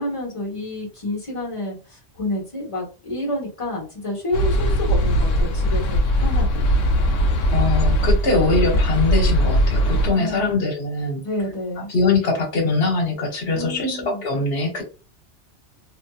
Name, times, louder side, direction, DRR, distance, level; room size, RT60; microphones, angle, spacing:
voice 1, 0.0-6.6 10.1-10.6 11.2-11.9 13.5-14.2, left 1 dB, 25° left, -2 dB, 1.1 m, -29 dB
sound 1, 4.3-10.1, equal, 85° left, 1.0 m, -19 dB
voice 2, 7.5-11.2 11.9-14.8, left 3 dB, 60° left, 0 dB, 1.2 m, -22 dB
2.6 x 2.6 x 2.3 m, 0.35 s
omnidirectional pair, 1.3 m